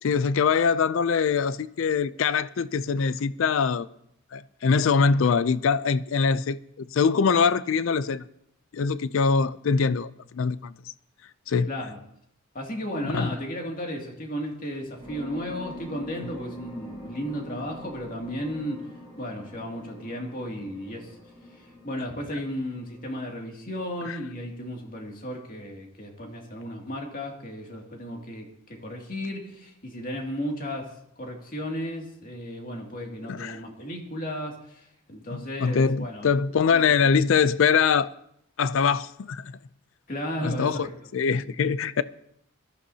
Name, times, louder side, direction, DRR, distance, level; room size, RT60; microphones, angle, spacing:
voice 1, 0.0-3.9 4.3-8.2 8.7-10.7 11.5-11.7 13.0-13.3 24.1-24.2 33.3-33.6 35.3-38.1 38.6-39.5 40.4-42.0, left 5 dB, 70° left, 0.4 m, -23 dB
voice 2, 11.7-12.0 12.5-18.8 19.2-21.2 21.6-36.3 36.6-37.1 40.1-40.9, equal, 40° left, 2.5 m, -34 dB
sound 1, 15.0-23.0, equal, 25° left, 7.6 m, -44 dB
21.5 x 14.0 x 2.8 m
head